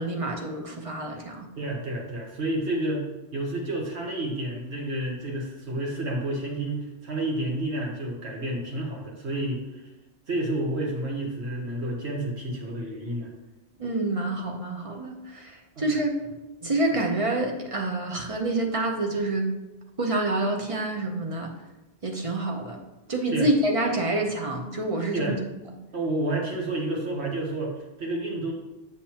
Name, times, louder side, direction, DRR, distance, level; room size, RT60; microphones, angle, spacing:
voice 1, 0.0-1.5 13.8-15.5 15.8-16.1 16.6-19.5 20.0-21.5 22.0-22.8 23.1-25.3, right 2 dB, 35° right, 1 dB, 0.8 m, -27 dB
voice 2, 1.5-3.1 3.3-9.6 10.3-13.3 15.7-15.9 23.3-23.5 25.1-25.4 25.9-28.5, right 1 dB, 80° right, -1 dB, 1.6 m, -30 dB
7.6 x 6.2 x 2.9 m, 1.0 s
omnidirectional pair, 1.1 m